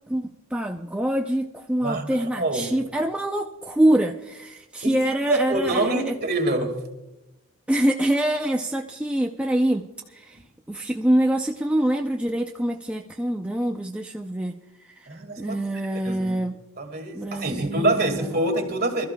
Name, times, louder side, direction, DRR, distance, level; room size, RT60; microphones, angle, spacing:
voice 1, 0.1-6.1 7.7-10.4 10.7-14.5 14.9-15.1 15.4-16.6 17.1-18.4, right 1 dB, 5° right, 2 dB, 0.4 m, -25 dB
voice 2, 1.8-2.7 4.8-5.0 5.3-6.8 15.1-16.4 16.8-19.1, right 2 dB, 45° right, 4 dB, 1.9 m, -26 dB
27.0 x 13.0 x 2.2 m, 0.93 s
head